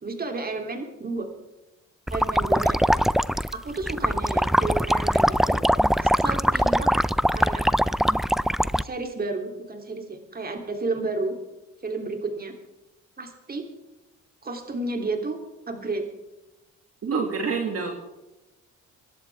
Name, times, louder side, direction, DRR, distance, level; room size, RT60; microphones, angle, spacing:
voice 1, 0.0-1.3 2.1-2.8 3.5-5.6 6.0-6.9 7.3-7.6 8.8-11.3 11.8-12.5 13.2-13.7 14.4-15.4 15.7-16.0, right 3 dB, 30° right, 4 dB, 3.1 m, -31 dB
sound 1, 2.1-8.8, equal, ahead, 0.4 m, -22 dB
voice 2, 17.0-17.9, right 5 dB, 50° right, 2 dB, 2.2 m, -26 dB
24.5 x 11.5 x 3.5 m, 1.0 s
cardioid pair, 90°, 30 cm